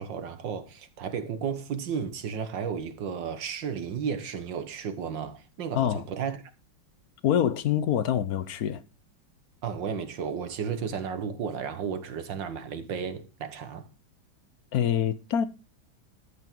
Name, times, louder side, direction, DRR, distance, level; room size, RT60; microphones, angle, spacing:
voice 1, 0.0-6.4 9.6-13.9, right 7 dB, 65° right, 1.9 m, -33 dB
voice 2, 5.7-6.0 7.2-8.8 14.7-15.5, left 9 dB, 60° left, 1.1 m, -25 dB
13.0 x 8.2 x 4.6 m
omnidirectional pair, 2.2 m